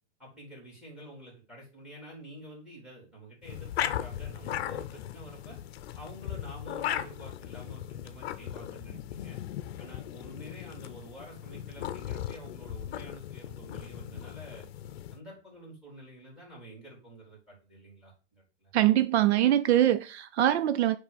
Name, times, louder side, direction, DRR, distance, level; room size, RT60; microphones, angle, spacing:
voice 1, 0.2-5.6 5.9-9.4 9.8-14.6 15.1-18.7, equal, ahead, 4.1 m, -48 dB
sound 1, 3.4-15.2, left 11 dB, 60° left, 0.7 m, -37 dB
voice 2, 18.7-20.9, right 12 dB, 70° right, 0.6 m, -23 dB
9.0 x 3.4 x 5.2 m
supercardioid pair, 150°, 34 cm